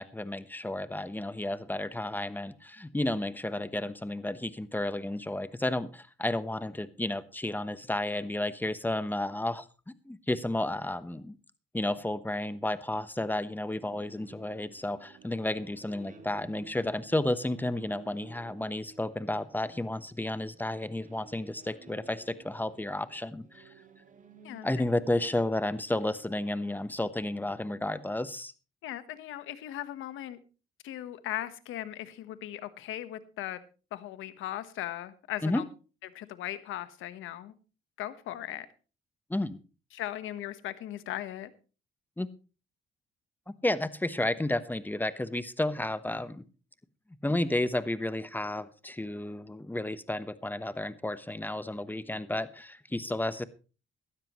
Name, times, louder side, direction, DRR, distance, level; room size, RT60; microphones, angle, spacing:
voice 1, 0.0-9.6 10.1-11.3 11.7-23.6 24.6-28.5 35.4-35.6 39.3-39.6 42.2-42.3 43.6-46.4 47.2-53.5, left 1 dB, 10° left, 14 dB, 1.1 m, -32 dB
sound 1, 13.8-27.7, right 3 dB, 40° right, 2.4 m, -54 dB
voice 2, 24.4-24.9 28.8-30.4 30.8-33.6 33.9-35.6 36.1-37.5 38.0-38.7 39.9-41.5, left 13 dB, 90° left, 13 dB, 1.3 m, -38 dB
17.5 x 12.5 x 3.1 m, 0.34 s
cardioid pair, 90°, 20 cm